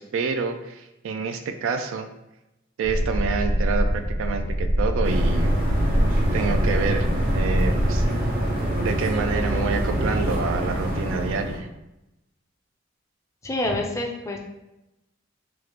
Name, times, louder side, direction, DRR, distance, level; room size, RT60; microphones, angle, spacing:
voice 1, 0.0-2.1 2.8-5.6 6.3-8.0 8.8-11.7, right 5 dB, 75° right, 7 dB, 0.3 m, -28 dB
sound 1, 2.8-8.0, equal, 85° left, 0.6 m, -24 dB
sound 2, 5.0-11.6, right 1 dB, 45° right, 0.8 m, -26 dB
voice 2, 13.4-14.4, left 1 dB, 15° left, 1 dB, 0.4 m, -27 dB
3.0 x 2.4 x 3.3 m, 0.93 s
head